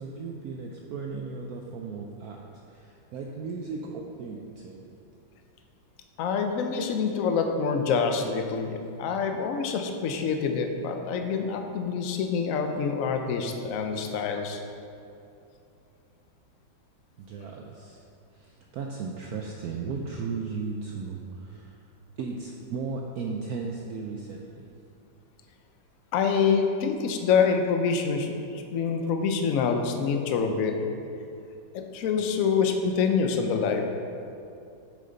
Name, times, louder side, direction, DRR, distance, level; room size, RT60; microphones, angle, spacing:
voice 1, 0.0-4.9 17.2-18.0 18.3-21.7 22.2-24.7, right 4 dB, 70° right, 0 dB, 0.9 m, -36 dB
voice 2, 6.2-14.6 26.1-30.8 31.7-34.0, left 5 dB, 65° left, 5 dB, 0.8 m, -26 dB
8.5 x 6.7 x 3.9 m, 2.6 s
omnidirectional pair, 2.1 m